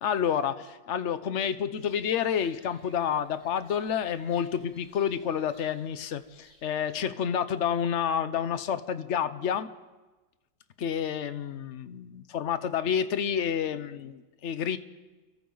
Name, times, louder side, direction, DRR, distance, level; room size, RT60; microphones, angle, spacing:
voice 1, 0.0-9.7 10.8-14.8, left 8 dB, 55° left, 12 dB, 0.8 m, -29 dB
sound 1, 1.7-7.0, left 1 dB, 40° left, 5.1 m, -59 dB
30.0 x 23.5 x 4.0 m, 1.2 s
omnidirectional pair, 2.2 m